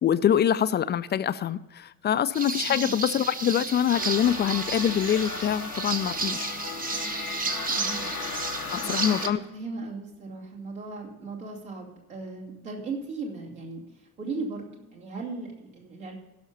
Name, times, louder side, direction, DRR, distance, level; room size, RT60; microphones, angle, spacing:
voice 1, 0.0-6.6 8.7-9.4, left 9 dB, 25° left, 14 dB, 0.4 m, -25 dB
sound 1, 2.3-9.3, right 4 dB, 20° right, 0.9 m, -32 dB
sound 2, 3.9-9.3, left 5 dB, 90° left, 0.9 m, -36 dB
voice 2, 7.7-8.1 8.5-16.1, right 3 dB, 75° right, -3 dB, 2.8 m, -37 dB
16.5 x 6.4 x 5.4 m, 0.99 s
figure-of-eight pair, 50°, 43 cm